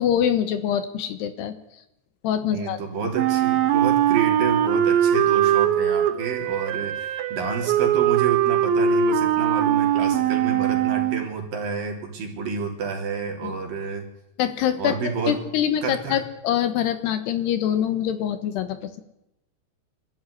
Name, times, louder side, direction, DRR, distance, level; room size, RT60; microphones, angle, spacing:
voice 1, 0.0-1.5 2.2-2.8 13.4-13.6 14.4-14.9 15.3-19.0, left 9 dB, 70° left, 10 dB, 3.2 m, -24 dB
voice 2, 2.4-14.0 14.8-15.4 15.8-16.2, right 5 dB, 55° right, 2 dB, 4.9 m, -29 dB
Wind instrument woodwind instrument, 3.1-11.3, right 9 dB, 85° right, 3.6 m, -21 dB
25.0 x 13.5 x 9.9 m, 0.87 s
omnidirectional pair, 5.1 m